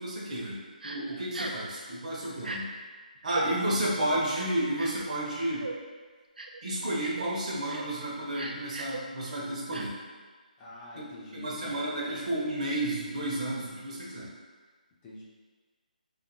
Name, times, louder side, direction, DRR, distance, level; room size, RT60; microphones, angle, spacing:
voice 1, 0.0-2.7 3.2-5.7 6.6-10.0 11.0-11.1 11.3-14.3, right 1 dB, 50° right, -5 dB, 0.8 m, -31 dB
Crying sobbing, 0.8-1.0 1.3-1.7 2.4-2.6 3.2-3.4 4.3-5.0 5.6-5.8 6.4-6.6 7.0-7.3 7.6-7.9 8.3-9.0 9.7-9.8, right 2 dB, 80° right, 0.3 m, -38 dB
voice 2, 3.3-3.9 10.6-11.9 15.0-15.2, left 2 dB, 15° left, -7 dB, 0.4 m, -46 dB
2.5 x 2.4 x 2.6 m, 1.5 s
figure-of-eight pair, 150°, 5 cm